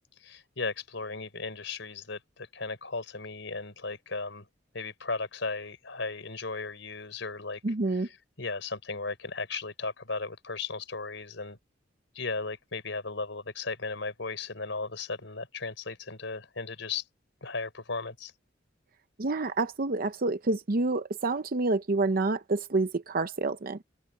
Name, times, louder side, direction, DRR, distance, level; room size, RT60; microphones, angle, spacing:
voice 1, 0.2-4.5 4.7-7.6 7.9-11.6 12.2-17.0 17.4-18.3, left 3 dB, 70° left, 5.1 m, -36 dB
voice 2, 7.6-8.1 19.2-23.8, right 3 dB, 50° right, 0.7 m, -28 dB
head